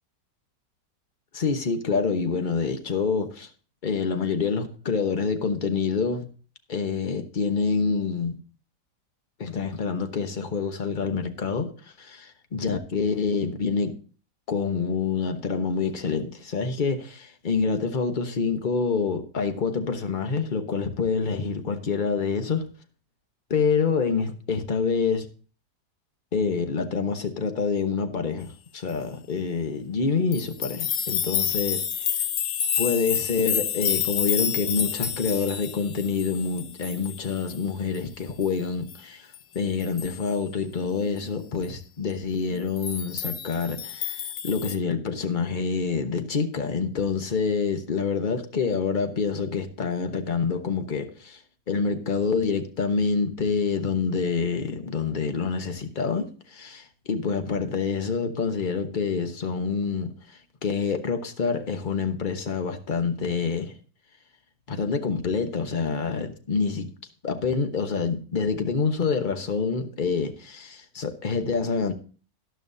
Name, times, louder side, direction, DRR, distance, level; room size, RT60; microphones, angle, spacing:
voice 1, 1.3-3.5 3.8-6.3 6.7-8.4 9.4-14.0 14.5-22.6 23.5-25.3 26.3-31.8 32.8-39.3 39.5-51.4 51.7-63.8 64.7-66.9 67.2-71.9, left 5 dB, 35° left, 1.0 m, -27 dB
sound 1, 30.3-37.6 37.9-38.0 38.4-38.5 38.9-39.0 39.3-39.4 39.8-40.3 42.8-44.8, left 9 dB, 65° left, 0.7 m, -29 dB
13.0 x 11.5 x 2.7 m
omnidirectional pair, 1.8 m